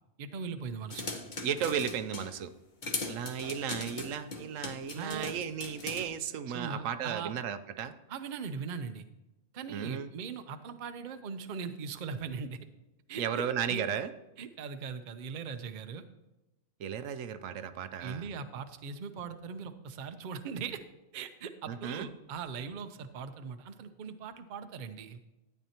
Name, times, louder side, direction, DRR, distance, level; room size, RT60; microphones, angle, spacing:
voice 1, 0.2-1.1 4.9-5.3 6.5-7.3 8.1-9.0 9.5-12.6 13.1-13.4 13.7-13.9 14.4-16.0 18.0-20.8 21.1-25.2, right 6 dB, 50° right, 9 dB, 0.7 m, -40 dB
sound 1, 0.9-2.3 2.8-6.1, left 3 dB, 40° left, 1.0 m, -39 dB
voice 2, 1.4-2.5 3.1-7.9 9.7-10.1 13.2-14.1 16.8-18.3 21.7-22.1, right 8 dB, 85° right, 10 dB, 1.0 m, -35 dB
12.5 x 9.2 x 2.9 m, 1.0 s
omnidirectional pair, 1.3 m